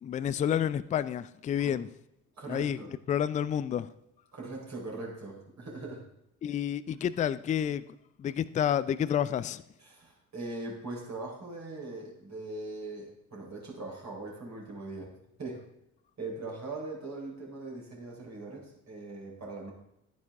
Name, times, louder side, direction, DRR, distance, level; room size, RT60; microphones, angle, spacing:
voice 1, 0.0-1.9 2.5-2.8 3.1-3.9 6.4-7.8 8.2-9.6, left 9 dB, 20° left, 0.4 m, -29 dB
voice 2, 2.4-2.9 4.3-6.1 9.8-15.6 16.2-19.7, right 2 dB, 40° right, 4.3 m, -41 dB
11.5 x 10.5 x 3.6 m
figure-of-eight pair, 45°, 42 cm